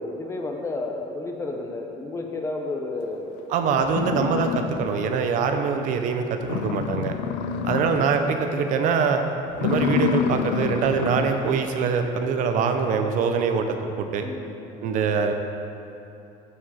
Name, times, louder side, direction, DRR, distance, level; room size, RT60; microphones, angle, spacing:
voice 1, 0.0-3.4 7.2-7.6 14.2-14.9, left 2 dB, 15° left, 2 dB, 0.5 m, -32 dB
sound 1, 3.4-3.5 3.9-5.3 5.6-5.7 6.1-6.2 6.4-8.4 8.7-9.0 9.5-11.5, left 8 dB, 90° left, 0.5 m, -28 dB
voice 2, 3.5-7.1 7.6-9.2 9.6-14.2 14.8-15.3, right 5 dB, 50° right, 6 dB, 0.7 m, -23 dB
14.0 x 5.0 x 4.2 m, 2.8 s
cardioid pair, 180°, 17 cm